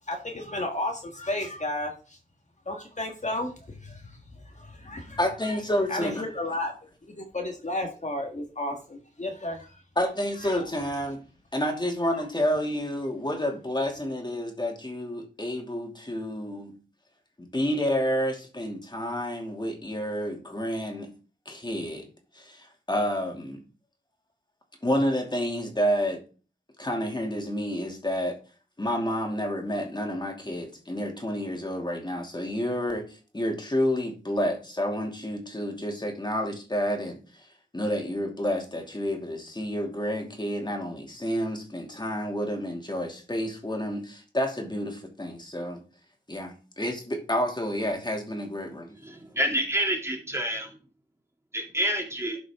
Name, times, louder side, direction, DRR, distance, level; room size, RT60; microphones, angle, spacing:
voice 1, 0.1-2.2 2.7-4.1 4.5-5.2 5.9-6.7 7.2-9.7, left 1 dB, 40° left, 1.7 m, -32 dB
voice 2, 5.2-6.2 10.0-11.2 11.5-16.8 17.5-21.1 21.5-22.1 22.3-23.6 24.8-26.2 26.8-28.4 28.8-37.2 37.7-45.8 46.3-48.9, equal, 25° left, 2.6 m, -29 dB
voice 3, 49.0-50.7 51.5-52.4, equal, 15° right, 2.7 m, -28 dB
12.0 x 5.8 x 3.7 m
wide cardioid pair, 65°, 19 cm